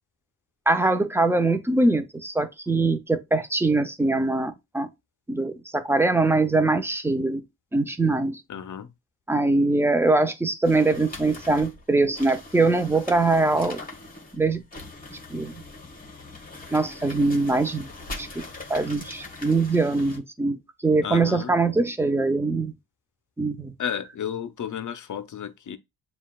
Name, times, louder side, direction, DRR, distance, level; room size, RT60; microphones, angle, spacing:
voice 1, 0.7-4.9 5.3-7.4 7.7-8.4 9.3-13.8 14.3-14.6 15.1-15.6 16.7-17.9 18.2-18.4 18.7-22.7 23.4-23.7, right 3 dB, 5° right, 0.5 m, -23 dB
voice 2, 8.5-8.9 21.0-21.5 23.8-25.8, left 8 dB, 45° left, 0.7 m, -32 dB
sound 1, 10.6-20.2, left 3 dB, 20° left, 1.4 m, -41 dB
7.2 x 2.4 x 2.3 m
cardioid pair, 65°, 42 cm